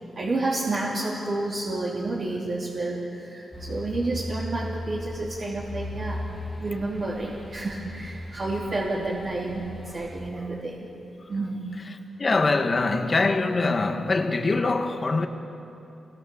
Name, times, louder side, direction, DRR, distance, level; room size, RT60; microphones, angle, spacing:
voice 1, 0.1-6.3 6.6-10.9 11.3-11.6, right 2 dB, 45° right, 3.3 m, -30 dB
sound 1, 3.5-10.3, left 1 dB, 5° right, 2.3 m, -37 dB
voice 2, 12.2-15.3, left 3 dB, 30° left, 1.7 m, -23 dB
27.5 x 24.0 x 7.2 m
wide cardioid pair, 115°, 0 cm